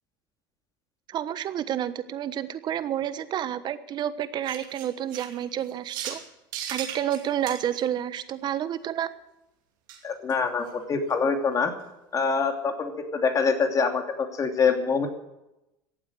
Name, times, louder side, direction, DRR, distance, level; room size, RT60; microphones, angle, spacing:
voice 1, 1.1-6.2 6.7-9.1, right 10 dB, 45° right, 13 dB, 1.2 m, -30 dB
sound 1, 4.4-6.2 6.5-7.8 9.9-10.0 10.3-10.4 10.7-10.8 11.1-11.2, right 9 dB, 80° right, 2.8 m, -37 dB
voice 2, 10.0-11.7 12.1-15.1, left 5 dB, 35° left, 5 dB, 2.8 m, -25 dB
15.0 x 8.7 x 9.7 m, 0.92 s
supercardioid pair, 95°, 10 cm